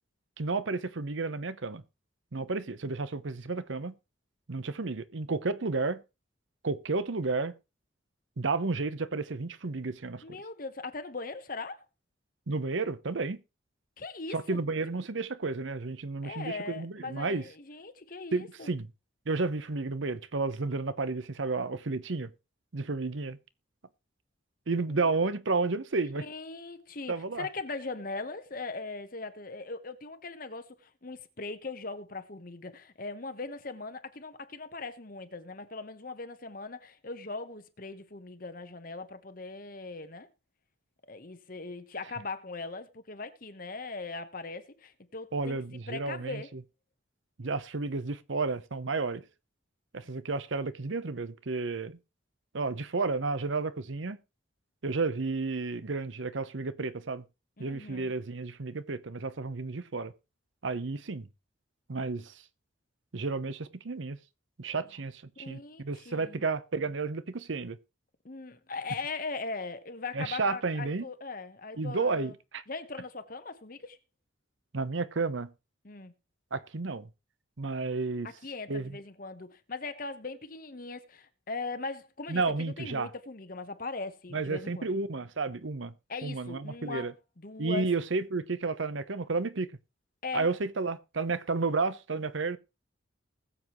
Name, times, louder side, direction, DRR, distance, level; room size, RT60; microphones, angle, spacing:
voice 1, 0.4-1.8 2.3-3.9 4.5-6.0 6.6-7.5 8.4-10.4 12.5-13.4 14.3-17.4 18.3-18.9 19.3-22.3 22.7-23.4 24.7-26.2 27.1-27.5 45.3-46.4 47.4-49.2 49.9-52.0 52.5-54.2 54.8-57.2 57.6-60.1 60.6-61.3 61.9-62.3 63.1-64.2 64.6-67.8 70.1-71.0 71.8-72.6 74.7-75.5 76.5-77.1 77.6-78.3 78.7-78.9 82.3-83.1 84.3-85.9 86.2-87.1 87.6-89.7 90.3-92.6, right 3 dB, 70° right, 0.8 m, -32 dB
voice 2, 10.2-11.8 14.0-14.6 16.2-18.7 24.9-25.1 26.2-40.3 41.1-45.6 45.9-46.5 57.6-58.1 65.4-66.5 68.2-72.3 72.7-74.0 75.8-76.1 78.2-84.9 86.1-87.1 87.4-87.9 90.2-90.5, left 3 dB, 45° left, 1.0 m, -40 dB
20.0 x 7.5 x 3.1 m
head